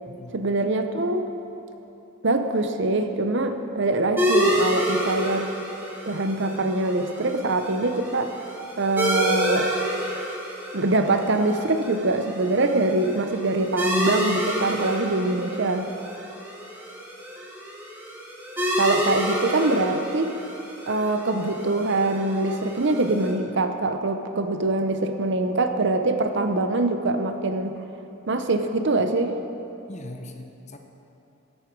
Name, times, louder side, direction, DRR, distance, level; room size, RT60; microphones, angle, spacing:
voice 1, 0.3-1.2 2.2-5.5 6.1-8.3 8.8-9.7 10.7-15.9 18.8-20.4 20.9-27.8 28.3-29.4, right 2 dB, 55° right, 7 dB, 0.7 m, -23 dB
sound 1, 4.2-23.3, equal, 10° right, 1.7 m, -29 dB
voice 2, 29.9-30.8, left 1 dB, 30° left, 5 dB, 0.9 m, -40 dB
15.0 x 11.0 x 4.7 m, 2.9 s
head